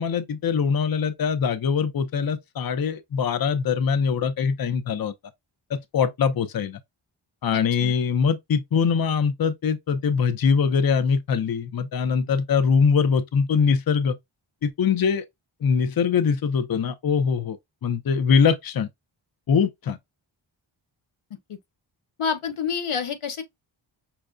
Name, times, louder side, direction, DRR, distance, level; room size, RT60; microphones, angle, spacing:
voice 1, 0.0-5.1 5.7-6.8 7.4-14.2 14.6-15.2 15.6-17.6 17.8-18.9 19.5-20.0, left 6 dB, 45° left, 0.6 m, -22 dB
voice 2, 22.2-23.4, left 6 dB, 85° left, 0.9 m, -27 dB
5.7 x 2.2 x 2.5 m
cardioid pair, 70°, 49 cm